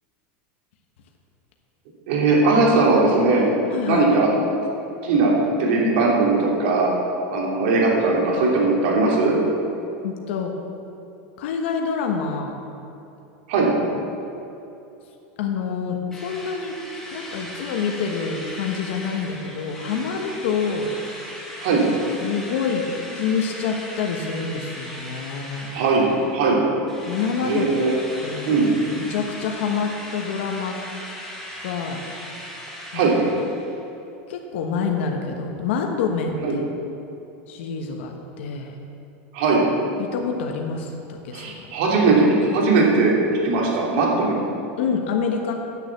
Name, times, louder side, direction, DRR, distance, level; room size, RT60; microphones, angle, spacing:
voice 1, 2.1-3.4 3.9-4.3 5.0-5.3 5.6-6.9 7.3-9.4 13.5-13.7 21.6-21.8 25.7-26.1 26.3-26.6 27.4-27.9 28.5-28.7 32.9-33.2 36.4-36.5 39.3-39.6 41.3-43.1 43.4-44.4, right 3 dB, 65° right, -3 dB, 3.0 m, -19 dB
voice 2, 3.7-4.1 10.0-10.5 11.4-12.6 13.9-14.0 15.4-16.7 17.1-20.9 22.2-25.7 27.0-27.7 28.2-28.5 29.0-30.8 31.6-32.0 32.9-33.0 34.3-36.6 37.5-38.7 40.0-41.5 44.0-44.1 44.8-45.5, left 6 dB, 75° left, 2 dB, 1.3 m, -27 dB
Drill, 16.1-26.5 26.9-33.8, left 1 dB, 5° left, 2.1 m, -38 dB
9.8 x 6.6 x 8.4 m, 2.8 s
supercardioid pair, 155°, 6 cm